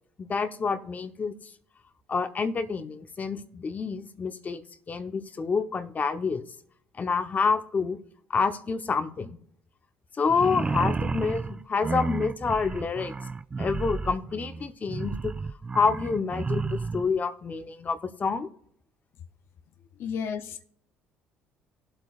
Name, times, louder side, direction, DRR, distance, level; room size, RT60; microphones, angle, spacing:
voice 1, 0.2-1.3 2.1-4.6 4.9-6.5 7.0-8.0 8.3-9.4 10.2-13.1 13.6-15.3 15.7-18.5, left 5 dB, 35° left, 0.9 m, -28 dB
sound 1, 10.3-17.1, right 4 dB, 20° right, 0.3 m, -32 dB
voice 2, 20.0-20.6, left 6 dB, 65° left, 0.6 m, -32 dB
17.5 x 7.9 x 2.4 m
supercardioid pair, 75°, 5 cm